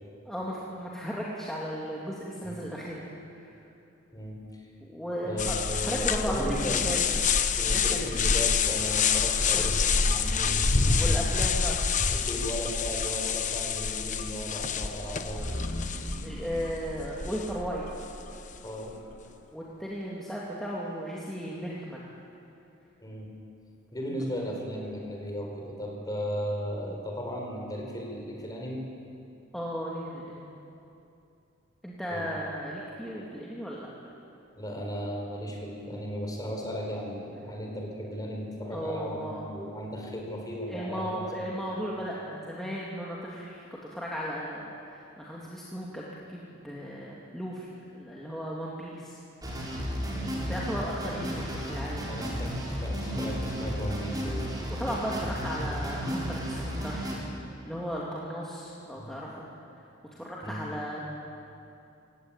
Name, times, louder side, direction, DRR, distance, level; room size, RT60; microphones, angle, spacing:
voice 1, 0.2-3.6 4.8-7.0 7.7-8.1 9.5-9.7 10.7-11.8 16.2-17.8 19.5-22.1 24.1-24.2 29.5-30.5 31.8-33.9 38.7-39.5 40.7-43.6 43.9-47.7 47.9-49.2 49.7-49.8 50.5-52.4 54.8-59.4 60.1-61.1, equal, ahead, -6 dB, 2.6 m, -36 dB
voice 2, 4.1-4.6 5.2-7.1 7.6-11.1 11.7-11.8 12.1-15.7 18.6-19.0 23.0-23.3 23.9-28.8 32.1-32.3 34.6-41.3 50.1-50.4 52.1-54.5 58.9-59.2 60.4-60.7, equal, 20° left, 0 dB, 4.8 m, -36 dB
sound 1, 5.4-17.9, left 5 dB, 40° left, 1.0 m, -27 dB
sound 2, 8.3-11.6 12.1-12.6 15.2-19.3, equal, 70° left, 6.0 m, -40 dB
sound 3, 49.4-57.2, equal, 20° right, 4.9 m, -33 dB
28.0 x 16.5 x 9.1 m, 2.7 s
head